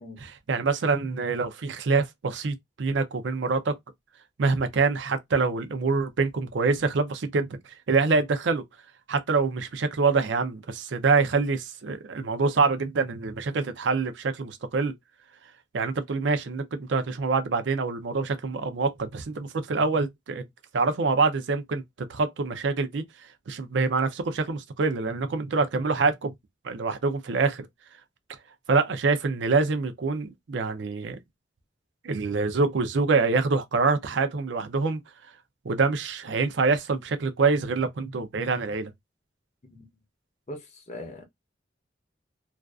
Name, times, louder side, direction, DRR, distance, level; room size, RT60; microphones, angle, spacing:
voice 1, 0.2-3.7 4.4-8.6 9.1-14.9 15.7-20.4 20.7-23.0 23.5-26.3 26.6-27.7 28.7-31.2 32.0-35.0 35.6-38.9, right 4 dB, 85° right, 0.5 m, -25 dB
voice 2, 40.5-41.3, left 1 dB, 35° left, 0.6 m, -40 dB
2.5 x 2.3 x 2.3 m
head